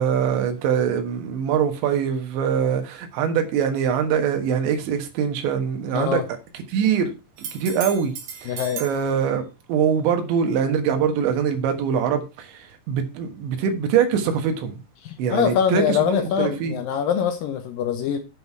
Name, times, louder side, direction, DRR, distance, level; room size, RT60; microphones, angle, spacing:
voice 1, 0.0-6.2 6.5-8.1 8.4-8.5 8.8-14.8 15.2-16.8, right 7 dB, 85° right, 3.8 m, -23 dB
voice 2, 5.9-6.2 8.5-8.8 15.0-18.2, left 8 dB, 75° left, 2.1 m, -23 dB
sound 1, 7.4-9.0 12.7-12.8, right 7 dB, 70° right, 3.9 m, -35 dB
10.5 x 5.8 x 4.6 m
omnidirectional pair, 5.0 m